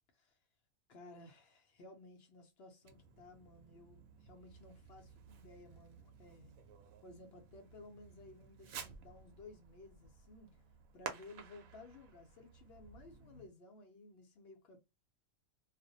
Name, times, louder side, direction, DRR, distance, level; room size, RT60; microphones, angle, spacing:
voice 1, 0.9-6.5 7.0-10.6 10.9-14.8, left 2 dB, 60° left, 0.7 m, -57 dB
Fireworks, 2.8-13.5, right 7 dB, 80° right, 1.0 m, -53 dB
2.5 x 2.0 x 2.6 m
omnidirectional pair, 1.4 m